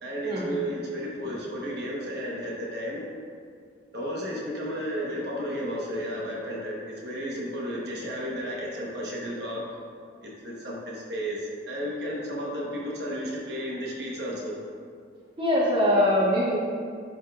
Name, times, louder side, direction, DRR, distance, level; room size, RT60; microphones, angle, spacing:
voice 1, 0.0-3.0 3.9-9.6 10.2-14.6, equal, 60° right, -4 dB, 1.2 m, -33 dB
voice 2, 15.4-16.6, left 1 dB, 25° right, -6 dB, 1.3 m, -22 dB
10.5 x 5.5 x 2.4 m, 2.2 s
head